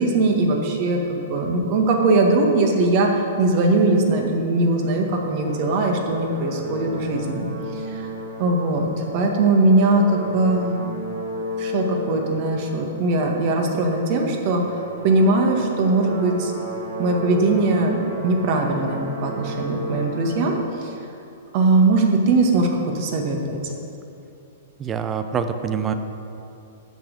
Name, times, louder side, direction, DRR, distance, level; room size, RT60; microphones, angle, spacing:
voice 1, 0.0-3.1 3.4-7.5 7.9-8.1 8.4-8.9 9.1-10.8 11.6-14.7 15.0-16.5 17.0-20.5 20.8-20.9 21.5-22.7 22.9-23.7, right 2 dB, 45° right, 1 dB, 1.9 m, -20 dB
sound 1, 4.6-20.5, equal, 75° right, 2.0 m, -34 dB
voice 2, 24.8-25.9, right 7 dB, 20° right, 9 dB, 0.7 m, -25 dB
9.2 x 8.2 x 7.8 m, 2.8 s
figure-of-eight pair, 110°, 0 cm